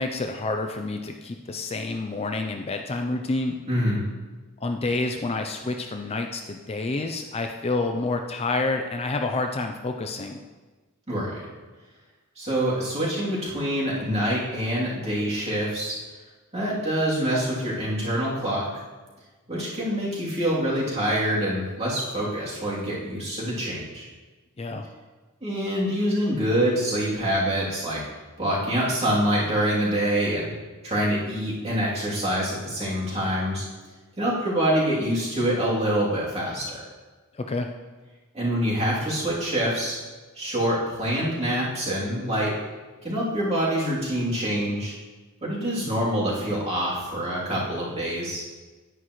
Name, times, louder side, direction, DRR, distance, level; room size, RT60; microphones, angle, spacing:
voice 1, 0.0-3.5 4.6-10.4 24.6-24.9 37.3-37.7, left 3 dB, 30° left, 4 dB, 0.5 m, -28 dB
voice 2, 3.7-4.0 11.1-11.5 12.4-16.0 16.5-18.8 19.5-24.1 25.4-28.0 28.4-30.5 30.8-33.6 34.2-36.8 38.3-40.0 40.3-42.5 43.0-44.9 45.4-48.4, equal, 30° right, -7 dB, 3.0 m, -25 dB
10.0 x 9.9 x 3.1 m, 1.3 s
head